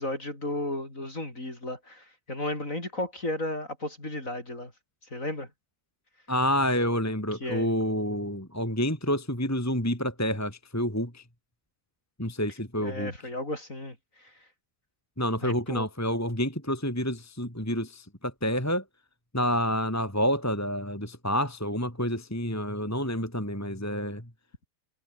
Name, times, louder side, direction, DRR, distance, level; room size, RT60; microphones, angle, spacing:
voice 1, 0.0-4.7 5.1-5.5 7.4-7.7 12.8-14.3 15.4-15.9, left 1 dB, 20° left, 6.1 m, -34 dB
voice 2, 6.3-11.2 12.2-13.1 15.2-18.8 19.3-24.2, equal, 5° left, 4.3 m, -28 dB
omnidirectional pair, 3.7 m